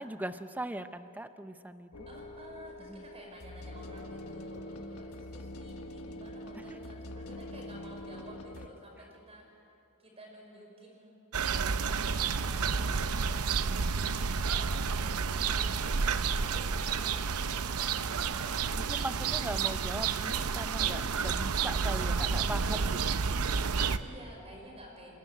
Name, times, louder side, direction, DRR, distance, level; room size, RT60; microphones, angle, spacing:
voice 1, 0.0-2.1 2.8-3.1 4.8-5.0 6.5-6.8 12.8-13.0 18.8-23.7, right 1 dB, 10° right, 10 dB, 0.7 m, -40 dB
sound 1, 1.9-8.7, left 1 dB, 85° left, 1.3 m, -44 dB
voice 2, 2.1-9.4 10.0-18.9 23.9-25.2, equal, 30° right, 0 dB, 5.7 m, -52 dB
sound 2, 11.3-24.0, right 5 dB, 90° right, 0.7 m, -30 dB
27.5 x 13.0 x 9.7 m, 2.8 s
head